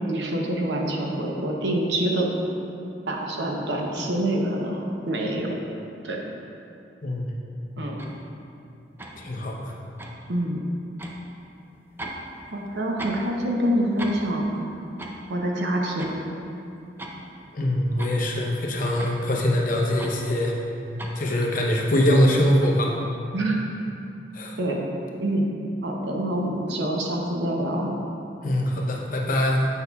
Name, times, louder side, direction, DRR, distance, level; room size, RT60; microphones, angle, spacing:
voice 1, 0.1-2.3 3.1-5.5 6.0-6.2 7.8-8.0 10.3-10.6 12.5-14.5 15.3-16.1 23.3-23.7 24.6-24.8 25.2-25.5 25.8-27.9, right 1 dB, 75° right, 0 dB, 0.8 m, -26 dB
voice 2, 7.0-7.3 9.2-9.7 17.5-20.5 21.2-22.9 24.3-24.6 28.4-29.7, left 1 dB, 50° left, -1 dB, 0.7 m, -23 dB
sound 1, 8.0-8.2 9.0-9.2 10.0-10.2 11.0-11.2 12.0-12.3 12.5-13.3 13.6-13.7 14.0-14.3 15.0-15.2 16.0-16.2 16.8-17.2 18.0-18.2 19.0-19.2 20.0-20.2 21.0-21.2, right 1 dB, 15° right, 0.4 m, -37 dB
8.2 x 5.4 x 2.3 m, 2.7 s
head